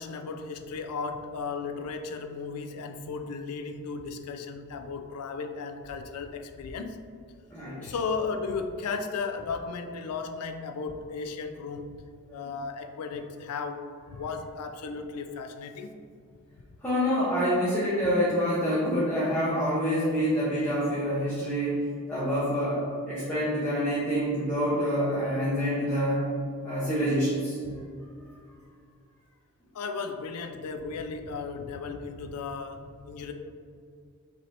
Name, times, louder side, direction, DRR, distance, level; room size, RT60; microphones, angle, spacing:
voice 1, 0.0-7.0 7.8-12.0 12.3-15.9 27.6-27.7 29.7-33.3, left 4 dB, 85° left, 7 dB, 0.4 m, -35 dB
voice 2, 7.5-7.9 16.8-21.8 22.1-26.2 26.6-27.6, equal, 10° left, -11 dB, 0.7 m, -27 dB
5.2 x 2.7 x 3.3 m, 2.3 s
head